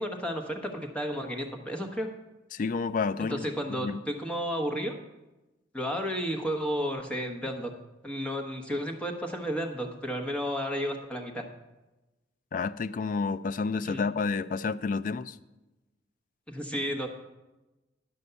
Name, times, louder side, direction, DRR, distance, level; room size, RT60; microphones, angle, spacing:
voice 1, 0.0-2.1 3.2-4.9 5.7-7.7 8.0-11.5 13.8-14.0 16.5-17.1, equal, 5° left, 2 dB, 1.1 m, -32 dB
voice 2, 2.5-4.0 12.5-15.4, left 4 dB, 45° left, 14 dB, 0.3 m, -30 dB
11.0 x 5.3 x 6.8 m, 1.0 s
head